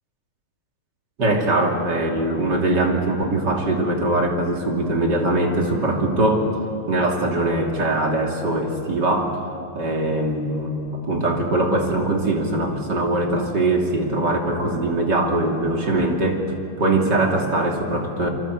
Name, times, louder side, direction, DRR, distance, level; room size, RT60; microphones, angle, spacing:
voice 1, 1.2-6.5 6.9-9.4 9.7-16.4 16.8-18.3, right 2 dB, 30° right, 1 dB, 2.9 m, -21 dB
27.5 x 24.0 x 8.0 m, 2.8 s
omnidirectional pair, 4.3 m